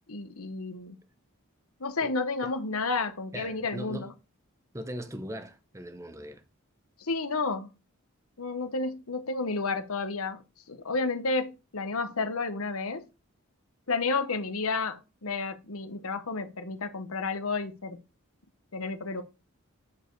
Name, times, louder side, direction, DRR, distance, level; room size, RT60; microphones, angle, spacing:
voice 1, 0.1-1.0 1.8-4.1 7.0-7.7 8.4-10.4 10.7-13.0 13.9-18.0 18.7-19.2, left 3 dB, 80° left, 1.2 m, -31 dB
voice 2, 3.3-4.1 4.7-6.4, equal, 15° right, 0.8 m, -39 dB
8.5 x 4.7 x 4.7 m
head